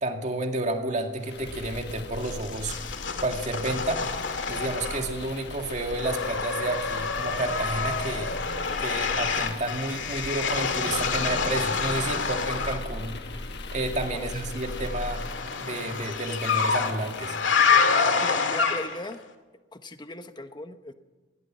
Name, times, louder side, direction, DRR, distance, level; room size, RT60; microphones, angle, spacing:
voice 1, 0.0-2.9 3.2-4.1 4.5-8.4 8.8-13.4 13.7-15.3 15.6-17.4, right 2 dB, 40° right, 4 dB, 2.2 m, -31 dB
sound 1, 1.2-17.9, left 2 dB, 60° left, 1.4 m, -39 dB
sound 2, 2.2-5.3 5.6-12.9 14.4-19.1, left 5 dB, 80° left, 2.1 m, -27 dB
voice 2, 14.1-14.6 18.2-19.2 19.7-20.9, left 1 dB, 25° left, 9 dB, 1.1 m, -38 dB
20.5 x 17.5 x 7.5 m, 1.3 s
head